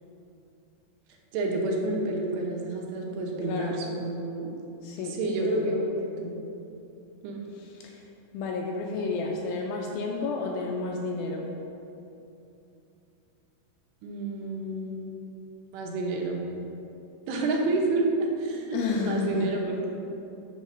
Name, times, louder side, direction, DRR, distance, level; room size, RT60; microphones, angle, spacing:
voice 1, 1.3-4.5 5.0-5.9 6.2-6.4 7.2-7.4 14.0-15.2 15.7-16.4 17.3-19.9, right 2 dB, 90° right, 0 dB, 3.1 m, -29 dB
voice 2, 3.5-3.8 4.8-5.8 7.8-8.0 8.3-11.6 18.7-19.5, left 3 dB, 80° left, 0 dB, 2.2 m, -31 dB
9.2 x 4.1 x 5.5 m, 2.8 s
omnidirectional pair, 4.7 m